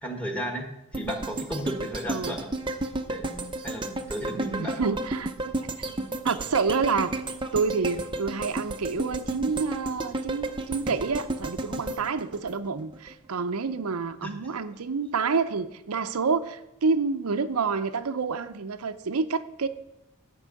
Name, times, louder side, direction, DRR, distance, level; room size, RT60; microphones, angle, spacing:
voice 1, 0.0-2.5 3.1-4.8 14.2-14.3, equal, 5° left, 4 dB, 1.5 m, -34 dB
sound 1, 0.9-13.1 13.5-13.6, right 2 dB, 20° right, 0.6 m, -33 dB
voice 2, 4.4-5.3 5.8-5.9 6.2-7.1 7.5-19.7, right 4 dB, 90° right, 9 dB, 0.6 m, -28 dB
11.0 x 5.5 x 7.6 m, 0.88 s
head